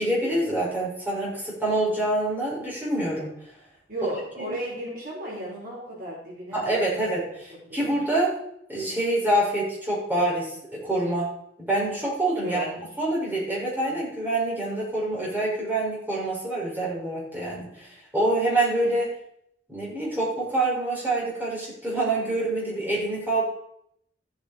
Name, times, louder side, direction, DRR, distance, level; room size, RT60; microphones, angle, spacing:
voice 1, 0.0-3.3 4.5-4.6 6.5-7.2 7.7-8.3 8.7-11.3 11.6-12.6 13.0-19.1 19.7-23.4, right 1 dB, 10° right, -6 dB, 6.0 m, -26 dB
voice 2, 3.9-7.2 7.5-7.9 12.4-12.8, right 1 dB, 50° right, -5 dB, 4.8 m, -35 dB
14.5 x 8.6 x 4.5 m, 0.72 s
head